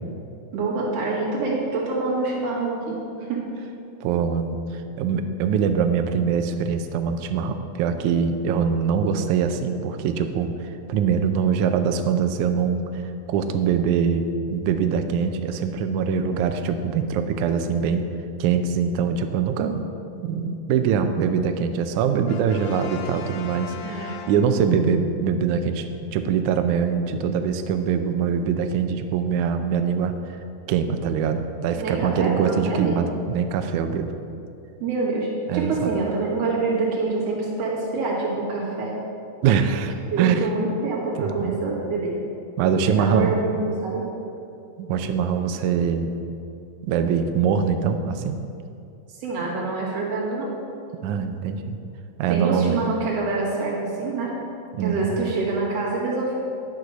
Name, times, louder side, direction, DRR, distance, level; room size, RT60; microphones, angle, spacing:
voice 1, 0.5-3.5 23.8-24.1 31.7-33.0 34.8-38.9 40.1-42.1 42.8-44.0 49.2-50.6 52.3-54.3 54.8-56.4, right 3 dB, 50° right, -5 dB, 2.7 m, -26 dB
voice 2, 4.0-13.0 13.3-18.1 18.4-19.9 20.2-30.4 30.7-34.1 35.5-35.9 39.4-40.5 41.2-41.6 42.6-43.4 44.8-46.1 46.8-48.4 51.0-51.8 52.2-52.9 54.7-55.1, right 7 dB, 80° right, 7 dB, 1.7 m, -23 dB
Brass instrument, 22.3-24.9, left 5 dB, 75° left, 2.3 m, -39 dB
10.5 x 6.4 x 6.0 m, 2.6 s
omnidirectional pair, 4.1 m